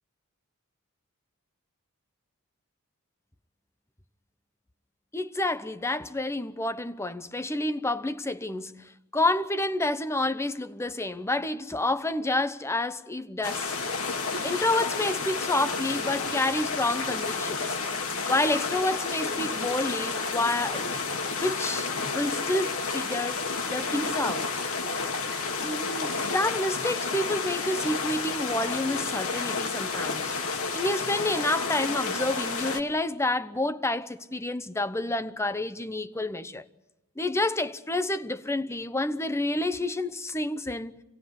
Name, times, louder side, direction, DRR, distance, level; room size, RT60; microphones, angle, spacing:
voice 1, 5.1-13.7 14.4-17.8 18.3-20.9 21.4-24.5 25.5-30.3 30.7-36.6 37.2-41.0, left 2 dB, 10° left, 0.8 m, -29 dB
sound 1, 13.4-32.8, left 4 dB, 70° left, 1.8 m, -31 dB
26.5 x 18.0 x 9.7 m
head